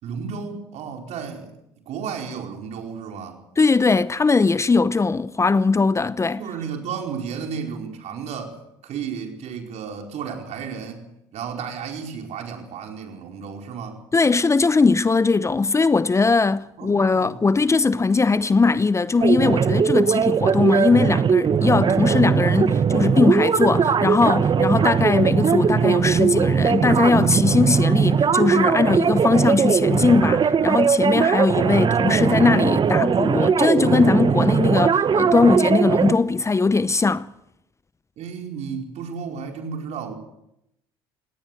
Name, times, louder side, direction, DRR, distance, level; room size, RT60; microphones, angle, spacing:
voice 1, 0.0-1.5 1.8-3.4 6.4-8.6 8.8-11.0 11.3-14.0 16.8-17.5 38.2-40.1, right 6 dB, 60° right, 4.8 m, -33 dB
voice 2, 3.6-6.4 14.1-37.3, left 4 dB, 20° left, 0.8 m, -20 dB
sound 1, 19.2-36.1, right 6 dB, 40° right, 1.1 m, -20 dB
19.5 x 18.5 x 7.9 m
hypercardioid pair, 65°, 13 cm